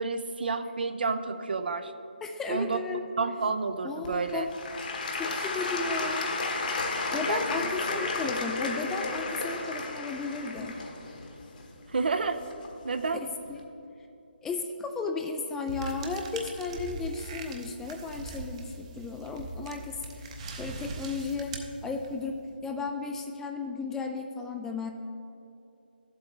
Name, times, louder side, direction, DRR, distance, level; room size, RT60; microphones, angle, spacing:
voice 1, 0.0-1.9 2.5-2.8 3.2-4.5 7.3-7.7 11.9-12.4 12.8-13.2, right 4 dB, 65° right, 9 dB, 0.6 m, -30 dB
voice 2, 2.2-3.1 3.8-4.5 5.2-6.3 7.1-10.8 13.5-13.6 14.4-20.3 20.6-21.5 21.8-24.9, left 4 dB, 5° left, 5 dB, 0.3 m, -34 dB
Applause / Crowd, 4.0-12.9 13.5-13.6, left 3 dB, 50° left, 1.3 m, -33 dB
sound 1, 15.7-22.3, right 3 dB, 35° right, 0.8 m, -40 dB
13.0 x 7.8 x 3.3 m, 2.7 s
figure-of-eight pair, 150°, 6 cm